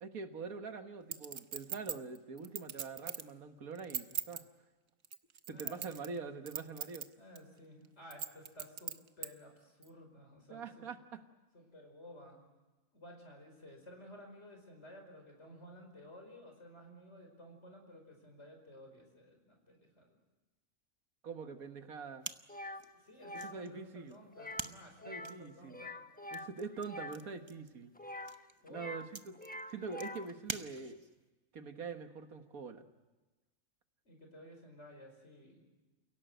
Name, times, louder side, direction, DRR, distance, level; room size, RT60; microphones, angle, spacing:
voice 1, 0.0-4.5 5.5-7.1 10.5-11.2 21.2-22.3 23.4-24.2 25.1-25.9 26.3-27.9 28.7-29.4 29.7-31.0 31.5-32.9, right 4 dB, 90° right, 7 dB, 1.9 m, -44 dB
Chink clink, 1.1-3.3 3.8-4.4 5.0-6.2 6.5-7.0 7.4-7.5 8.1-9.3 9.8-9.9, right 8 dB, 65° right, 1.3 m, -39 dB
voice 2, 5.5-5.8 7.2-10.9 11.5-12.4 12.9-20.2 23.0-26.0 28.6-28.9 34.1-35.6, equal, 50° left, 3 dB, 5.4 m, -55 dB
sound 1, 22.2-31.2, right 3 dB, 25° right, 0.7 m, -48 dB
sound 2, 22.5-22.8 23.2-23.6 24.3-24.7 25.0-25.4 25.7-27.2 28.0-29.1 29.3-30.3, left 1 dB, 10° left, 0.7 m, -45 dB
29.5 x 17.0 x 9.2 m, 1.2 s
omnidirectional pair, 1.5 m